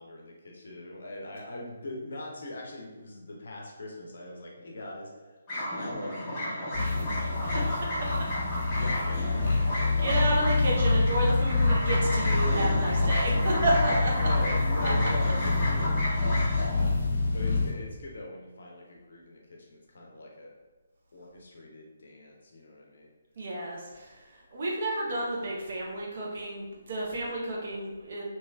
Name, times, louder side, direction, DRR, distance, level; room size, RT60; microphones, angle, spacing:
voice 1, 0.0-5.4 5.7-7.9 8.7-10.4 13.0-13.2 13.8-16.0 16.6-20.5 21.1-23.1 23.8-23.9, left 1 dB, 55° left, -1 dB, 0.5 m, -42 dB
sound 1, 5.5-16.6, equal, 15° left, 1.1 m, -33 dB
sound 2, 6.7-17.7, left 3 dB, 40° left, 0.8 m, -26 dB
voice 2, 9.6-14.1 16.4-16.6 23.4-28.2, right 1 dB, 45° right, -3 dB, 0.6 m, -31 dB
3.0 x 2.8 x 2.2 m, 1.2 s
figure-of-eight pair, 140°, 0 cm